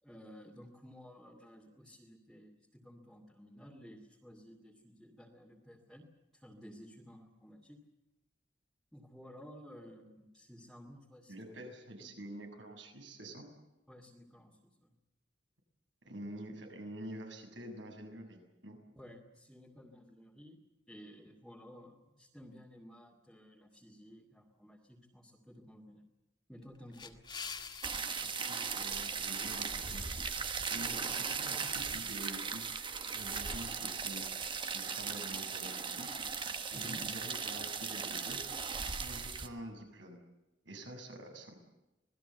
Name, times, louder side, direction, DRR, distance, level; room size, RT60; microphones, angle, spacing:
voice 1, 0.0-6.1 6.3-7.8 8.9-11.6 12.0-12.2 13.9-15.0 19.0-26.0 26.5-27.2 36.7-37.1, equal, ahead, -3 dB, 2.4 m, -54 dB
voice 2, 11.3-13.5 16.1-18.8 28.2-38.4 38.7-40.2 40.6-41.6, right 1 dB, 80° right, 3 dB, 6.8 m, -48 dB
sound 1, 26.6-31.1, left 5 dB, 25° left, 1.8 m, -49 dB
sound 2, 27.8-39.5, right 5 dB, 25° right, 1.4 m, -38 dB
26.5 x 19.5 x 8.1 m, 1.0 s
head